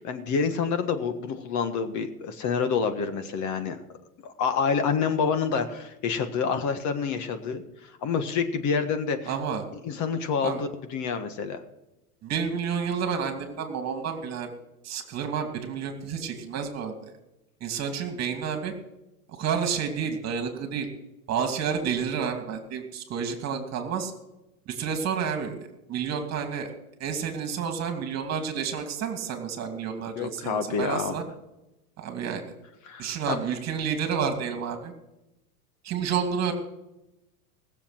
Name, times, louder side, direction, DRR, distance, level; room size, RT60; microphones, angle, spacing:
voice 1, 0.0-3.8 4.2-9.3 9.8-11.6 30.2-31.1 32.8-33.4, left 6 dB, 40° left, 8 dB, 1.6 m, -28 dB
voice 2, 9.3-9.6 10.4-10.6 12.2-14.5 14.8-16.9 17.6-18.7 19.3-20.9 21.3-24.1 24.7-26.7 27.0-31.2 32.0-32.5 33.0-34.9 35.8-36.5, right 7 dB, 35° right, 5 dB, 2.6 m, -30 dB
19.5 x 7.3 x 5.9 m, 0.94 s
hypercardioid pair, 110°, 46 cm